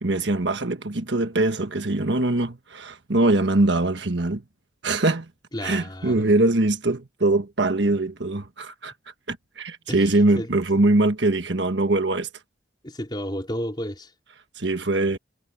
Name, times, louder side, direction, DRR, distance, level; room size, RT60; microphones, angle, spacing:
voice 1, 0.0-4.4 4.8-5.3 5.6-8.9 9.3-12.3 14.6-15.2, right 2 dB, 65° right, 1.4 m, -22 dB
voice 2, 5.5-6.2 9.9-10.5 12.8-14.1, equal, 25° left, 3.8 m, -32 dB
head